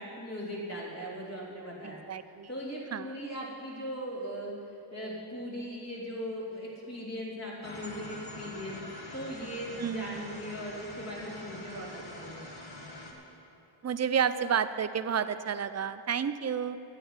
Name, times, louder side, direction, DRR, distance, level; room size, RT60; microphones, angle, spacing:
voice 1, 0.0-2.0 2.5-4.6 4.9-8.8 9.1-12.4, equal, 35° left, -6 dB, 3.3 m, -39 dB
voice 2, 1.8-2.5 2.9-3.2 9.8-10.3 13.8-16.8, right 7 dB, 35° right, 13 dB, 0.5 m, -31 dB
sound 1, 7.6-13.1, left 1 dB, 55° left, 1.8 m, -45 dB
9.9 x 8.4 x 9.5 m, 2.9 s
wide cardioid pair, 95°, 47 cm